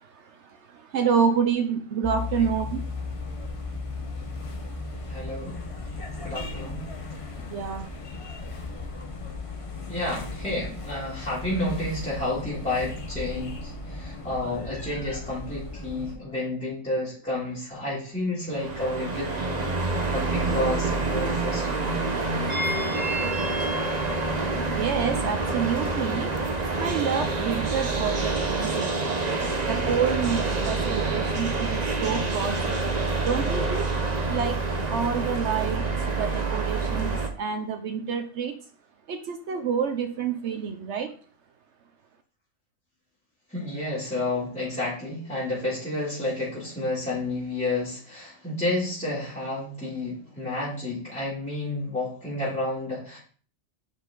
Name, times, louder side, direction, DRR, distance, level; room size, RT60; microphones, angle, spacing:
voice 1, 0.0-2.8 7.4-8.0 24.7-26.3 26.8-29.0 29.7-32.8 33.2-33.9 34.3-38.5 39.1-41.1, right 7 dB, 70° right, 7 dB, 0.9 m, -28 dB
sound 1, 2.0-16.2, left 3 dB, 30° left, 0.8 m, -36 dB
voice 2, 5.1-5.6 6.2-6.8 9.9-19.7 20.1-22.0 43.5-53.2, left 1 dB, 5° left, -9 dB, 3.1 m, -30 dB
sound 2, 18.5-37.3, right 3 dB, 35° right, 1.1 m, -27 dB
7.1 x 5.6 x 3.8 m, 0.42 s
omnidirectional pair, 1.3 m